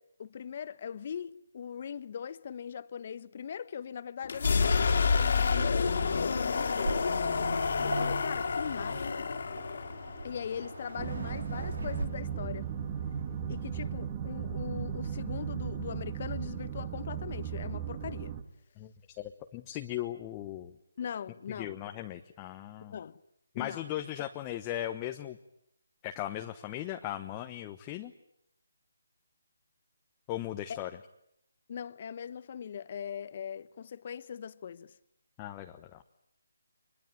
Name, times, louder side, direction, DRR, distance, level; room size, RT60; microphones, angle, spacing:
voice 1, 0.0-7.0 7.8-9.3 10.2-12.7 13.5-18.3 21.0-21.8 22.8-23.2 23.5-23.9 24.2-24.3 30.7-30.8 31.7-34.9, left 8 dB, 40° left, 1.1 m, -40 dB
sound 1, 4.2-12.0, left 5 dB, 55° left, 2.5 m, -29 dB
Waves surf, 6.8-12.0, right 2 dB, 65° right, 3.4 m, -41 dB
sound 2, 11.0-18.4, right 8 dB, 25° right, 1.9 m, -36 dB
voice 2, 18.8-20.7 21.6-23.0 23.5-25.4 26.0-28.1 30.3-30.9 35.4-36.0, left 13 dB, 20° left, 1.1 m, -38 dB
24.5 x 22.0 x 9.1 m
figure-of-eight pair, 160°, 0 cm